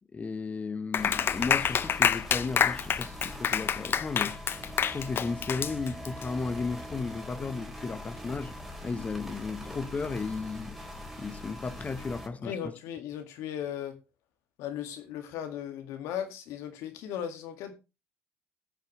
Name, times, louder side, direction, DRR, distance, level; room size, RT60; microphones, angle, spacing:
voice 1, 0.1-4.4 4.8-8.5 8.8-10.7 11.2-12.6, left 4 dB, 30° left, 1.1 m, -34 dB
Clapping, 0.9-6.2, left 8 dB, 45° left, 0.6 m, -27 dB
sound 1, 1.0-12.3, left 1 dB, 5° right, 3.5 m, -42 dB
voice 2, 12.4-14.0 14.6-17.7, left 9 dB, 80° left, 2.0 m, -37 dB
19.0 x 6.6 x 3.2 m
supercardioid pair, 90°, 5 cm